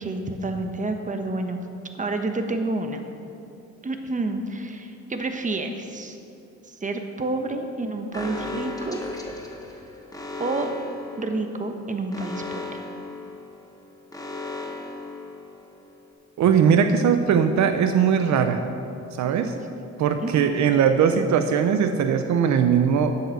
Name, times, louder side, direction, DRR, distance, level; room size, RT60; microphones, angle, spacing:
voice 1, 0.0-1.6 2.0-3.0 3.8-6.2 6.7-9.0 10.4-10.7 11.2-12.7 20.2-20.5, right 2 dB, 25° right, 5 dB, 1.2 m, -29 dB
Alarm, 8.1-15.9, left 2 dB, 10° left, 1.6 m, -36 dB
voice 2, 16.4-18.6 19.1-19.5 20.0-23.2, right 7 dB, 70° right, 8 dB, 0.7 m, -20 dB
10.5 x 8.0 x 6.4 m, 2.6 s
cardioid pair, 90°, 30 cm